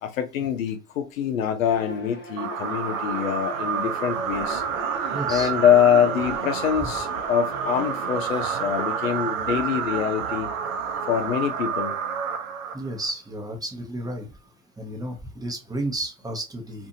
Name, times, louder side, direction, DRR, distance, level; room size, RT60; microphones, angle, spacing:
voice 1, 0.0-4.6 5.3-10.5 11.0-11.9, left 8 dB, 85° left, 0.7 m, -24 dB
Bowed string instrument, 1.6-8.4, left 3 dB, 30° left, 1.1 m, -42 dB
sound 1, 2.4-13.1, right 7 dB, 80° right, 0.7 m, -29 dB
voice 2, 5.1-5.5 12.7-14.3 14.8-16.9, right 1 dB, 10° right, 0.8 m, -32 dB
2.7 x 2.5 x 2.6 m
hypercardioid pair, 95°, 39 cm